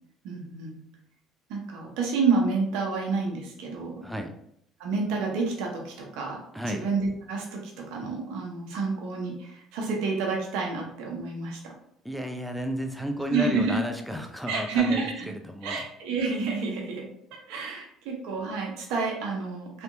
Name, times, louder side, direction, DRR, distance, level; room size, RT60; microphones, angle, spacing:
voice 1, 0.2-0.8 1.5-4.0 4.8-6.4 6.7-7.6 7.9-11.7 13.3-13.8 14.5-15.3 15.6-17.1 17.5-19.8, right 4 dB, 80° right, 0 dB, 0.9 m, -29 dB
voice 2, 4.0-4.3 6.5-6.8 12.0-15.9, equal, ahead, 4 dB, 0.6 m, -32 dB
3.4 x 2.8 x 2.6 m, 0.72 s
supercardioid pair, 80°, 0 cm